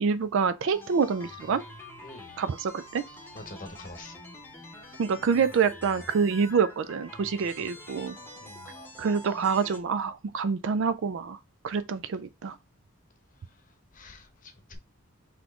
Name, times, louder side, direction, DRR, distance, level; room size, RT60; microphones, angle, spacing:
voice 1, 0.0-1.6 2.4-3.0 5.0-8.2 9.0-11.4 11.6-12.6, right 5 dB, 60° right, 0.4 m, -26 dB
sound 1, 0.7-9.8, left 1 dB, 10° left, 0.9 m, -46 dB
voice 2, 2.0-2.4 3.3-4.1 8.4-8.7 13.5-13.6 13.9-14.8, left 2 dB, 40° left, 0.9 m, -46 dB
4.1 x 3.0 x 3.6 m
head